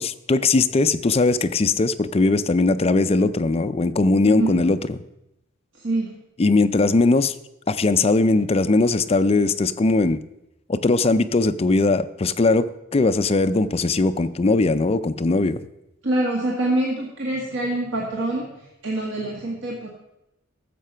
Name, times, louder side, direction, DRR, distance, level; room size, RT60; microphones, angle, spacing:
voice 1, 0.0-5.0 6.4-7.3 7.7-10.2 10.7-15.6, left 3 dB, 30° left, 11 dB, 0.5 m, -20 dB
voice 2, 4.2-4.6 5.8-6.2 16.0-18.5 18.8-19.9, right 1 dB, 85° right, -2 dB, 1.7 m, -25 dB
12.5 x 7.5 x 5.6 m, 0.88 s
head